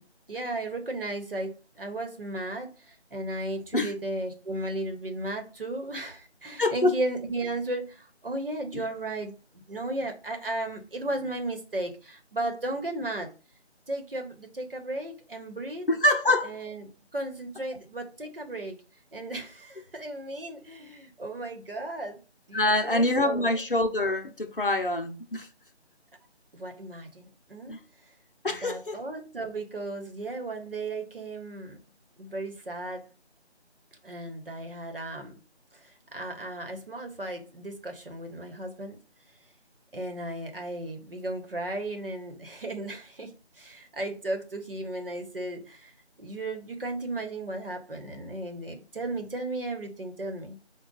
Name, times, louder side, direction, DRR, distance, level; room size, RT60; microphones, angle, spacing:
voice 1, 0.3-13.3 13.9-15.9 16.4-18.7 19.1-22.2 22.5-23.5 26.5-27.8 28.4-31.8 32.2-33.0 34.0-35.4 36.1-39.0 39.9-45.9 46.2-50.6, right 2 dB, 55° right, 1.1 m, -35 dB
voice 2, 6.6-6.9 8.7-8.8 15.9-16.5 22.5-25.5 27.7-27.8 28.4-29.0, left 1 dB, 50° left, 0.7 m, -25 dB
5.0 x 2.4 x 3.8 m
figure-of-eight pair, 170°, 34 cm